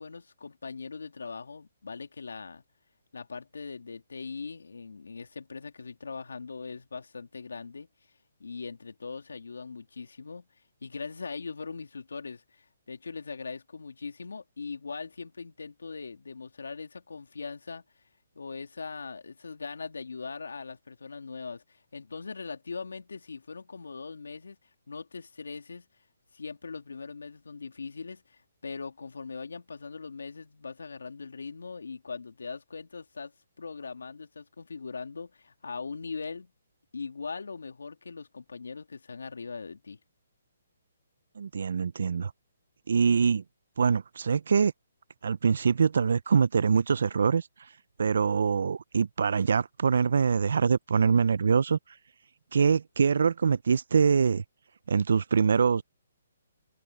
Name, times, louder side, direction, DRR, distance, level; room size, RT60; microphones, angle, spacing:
voice 1, 0.0-2.6 3.1-7.9 8.4-10.5 10.8-17.8 18.3-24.6 24.9-25.9 26.3-36.5 36.9-40.0, left 4 dB, 85° left, 2.6 m, -40 dB
voice 2, 41.4-42.3 42.9-43.4 43.8-44.7 45.2-47.4 48.0-51.8 52.5-54.4 54.9-55.8, right 6 dB, 70° right, 0.5 m, -24 dB
hypercardioid pair, 150°, 0 cm